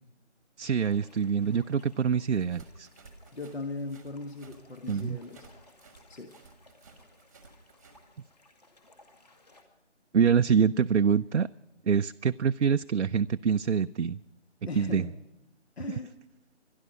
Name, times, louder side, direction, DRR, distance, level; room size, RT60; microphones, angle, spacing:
voice 1, 0.6-2.9 4.9-5.2 10.1-11.5 11.9-14.2 14.8-15.1, right 6 dB, 80° right, 10 dB, 0.5 m, -25 dB
sound 1, 0.8-9.6, left 2 dB, 35° left, 2.2 m, -61 dB
sound 2, 2.3-8.0, right 4 dB, 15° right, 1.2 m, -55 dB
voice 2, 3.3-5.5 6.1-6.3 14.7-15.1 15.8-16.1, left 3 dB, 60° left, 6 dB, 1.4 m, -38 dB
21.5 x 12.5 x 5.0 m, 1.0 s
figure-of-eight pair, 155°, 35 cm